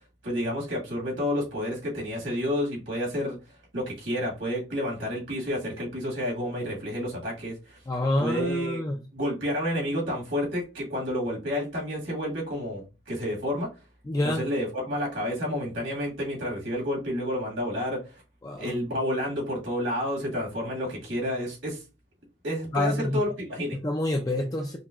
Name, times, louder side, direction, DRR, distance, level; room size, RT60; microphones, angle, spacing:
voice 1, 0.2-7.8 8.2-8.8 9.1-13.7 14.2-18.2 18.6-21.8 22.4-23.8, equal, 75° right, 1.9 m, -30 dB
voice 2, 7.9-9.0 14.1-14.4 18.4-18.7 22.7-23.2 23.7-24.8, left 1 dB, 20° left, 0.3 m, -27 dB
5.4 x 2.2 x 2.4 m
head